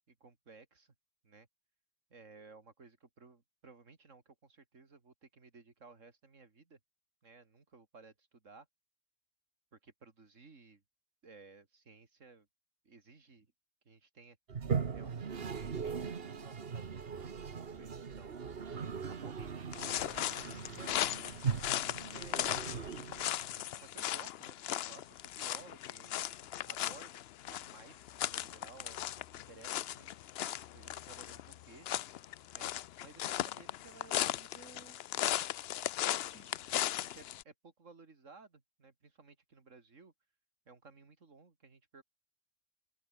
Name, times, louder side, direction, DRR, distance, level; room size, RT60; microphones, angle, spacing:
voice 1, 0.1-0.9 1.2-1.5 2.1-6.8 7.2-8.7 9.7-10.8 11.2-12.5 12.8-13.5 13.8-14.4 14.9-18.4 19.1-21.6 22.1-23.0 23.7-27.1 27.4-30.1 30.7-32.1 32.5-32.7 33.0-35.0 36.1-40.1 40.7-42.0, right 4 dB, 85° right, 3.0 m, -57 dB
Toilet flush, 14.5-23.6, right 6 dB, 50° right, 1.4 m, -39 dB
sound 1, 19.7-37.4, left 12 dB, 65° left, 0.7 m, -37 dB
open air
omnidirectional pair, 1.3 m